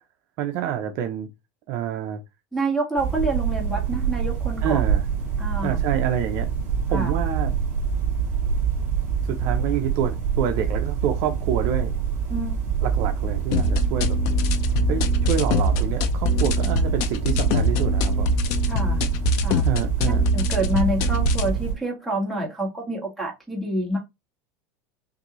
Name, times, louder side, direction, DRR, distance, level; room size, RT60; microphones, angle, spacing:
voice 1, 0.4-1.3 1.7-2.2 4.6-5.0 5.6-6.5 6.9-7.6 9.2-12.0 12.8-14.2 14.9-18.3 19.6-20.2, right 9 dB, 45° right, 0.6 m, -27 dB
voice 2, 2.5-4.8 5.4-5.8 6.9-7.1 12.3-12.6 18.7-19.0 19.4-19.7 20.3-24.0, right 2 dB, ahead, 1.6 m, -27 dB
sound 1, 3.0-21.7, right 7 dB, 25° right, 2.6 m, -26 dB
sound 2, 13.5-21.5, left 2 dB, 45° left, 0.7 m, -23 dB
6.3 x 2.7 x 3.0 m
supercardioid pair, 170°, 8 cm